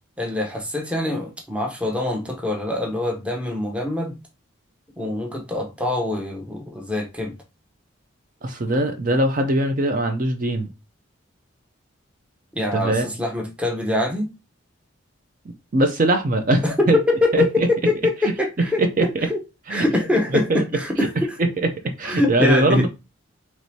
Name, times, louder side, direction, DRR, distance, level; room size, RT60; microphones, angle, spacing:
voice 1, 0.2-4.2 5.0-7.3 12.5-14.3 16.6-19.4 19.7-21.4 22.0-22.9, left 2 dB, 5° right, 0.7 m, -24 dB
voice 2, 8.4-10.7 12.7-13.1 15.7-17.0 17.3-17.7 18.8-19.1 19.7-19.8 20.5-20.6 21.0-21.1 21.6-21.7 22.0-22.9, right 1 dB, 40° right, 0.5 m, -21 dB
4.7 x 3.0 x 2.7 m
head